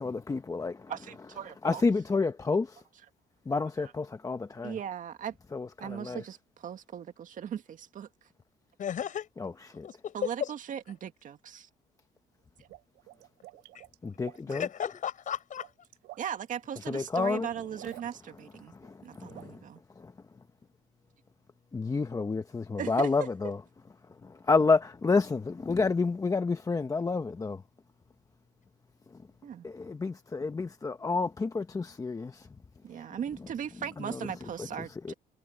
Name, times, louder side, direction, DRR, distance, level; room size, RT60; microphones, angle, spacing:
voice 1, 0.0-0.8 1.6-2.7 3.5-4.7 5.5-6.2 9.7-9.8 14.0-14.6 16.9-17.5 19.2-19.3 21.7-23.6 24.5-27.6 29.6-32.4 35.1-35.2, left 4 dB, 20° left, 1.0 m, -29 dB
voice 2, 0.9-1.9 3.5-3.9 4.6-5.4 5.8-8.3 10.1-11.7 16.2-18.7 19.0-19.8 22.8-23.3 29.4-29.7 32.8-35.1, right 9 dB, 50° right, 1.9 m, -38 dB
voice 3, 8.8-9.3 9.8-10.5 13.7-13.8 14.4-15.7, left 9 dB, 50° left, 6.5 m, -34 dB
sound 1, 12.4-14.8 15.4-16.5 17.7-18.5 18.8-19.5, right 18 dB, 90° right, 4.6 m, -51 dB
cardioid pair, 110°, 17 cm